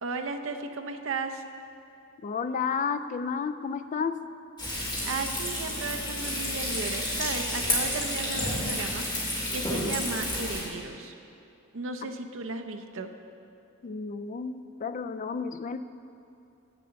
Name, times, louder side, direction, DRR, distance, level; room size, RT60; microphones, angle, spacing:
voice 1, 0.0-1.4 4.7-11.1 11.7-13.1, right 3 dB, 65° right, 7 dB, 0.6 m, -35 dB
voice 2, 2.2-4.2 12.0-12.1 13.8-15.8, left 5 dB, 35° left, 11 dB, 0.3 m, -31 dB
Frying (food), 4.6-10.6, left 1 dB, 20° left, 2.0 m, -30 dB
7.5 x 6.8 x 6.9 m, 2.6 s
head